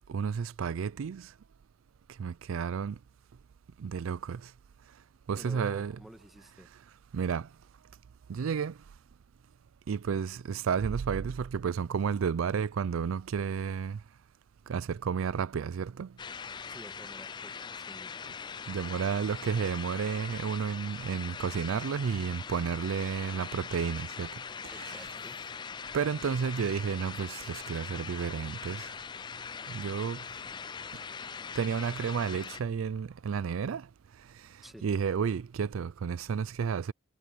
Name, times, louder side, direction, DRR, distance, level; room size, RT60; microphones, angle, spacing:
voice 1, 0.1-1.3 2.2-3.0 3.8-4.4 5.3-5.9 7.1-7.5 8.3-8.7 9.9-14.0 14.7-16.1 18.7-24.3 24.6-25.1 25.9-28.9 29.7-30.2 31.6-33.9 34.8-36.9, right 6 dB, 70° right, 0.4 m, -31 dB
voice 2, 5.4-6.7 16.7-18.5 24.7-25.4 34.6-34.9, equal, ahead, 1.8 m, -51 dB
sound 1, 16.2-32.6, left 6 dB, 20° left, 0.3 m, -41 dB
head